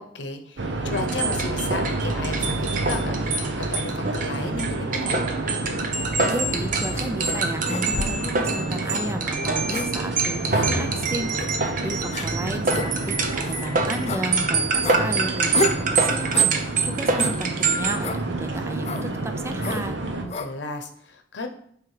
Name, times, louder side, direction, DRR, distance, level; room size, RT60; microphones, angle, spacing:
voice 1, 0.0-3.1 3.5-5.3 20.1-21.5, left 2 dB, 75° left, 6 dB, 0.8 m, -33 dB
sound 1, 0.6-20.2, right 2 dB, 75° right, 0.9 m, -29 dB
sound 2, 0.9-18.0, right 4 dB, 45° right, 0.8 m, -26 dB
voice 2, 6.2-19.9, right 1 dB, 15° right, 8 dB, 0.5 m, -33 dB
sound 3, 6.3-6.5 6.9-7.1 7.7-8.3 8.8-9.0 9.7-9.9 10.5-10.7 11.4-11.5 12.1-12.3 12.7-12.9 13.4-13.6 14.1-14.2 14.8-15.0 15.5-15.8 16.3-16.6 17.2-17.4 18.0-18.2 18.8-19.1 19.6-19.8 20.3-20.5, left 2 dB, 35° left, 0.4 m, -30 dB
7.8 x 3.5 x 4.9 m, 0.64 s
head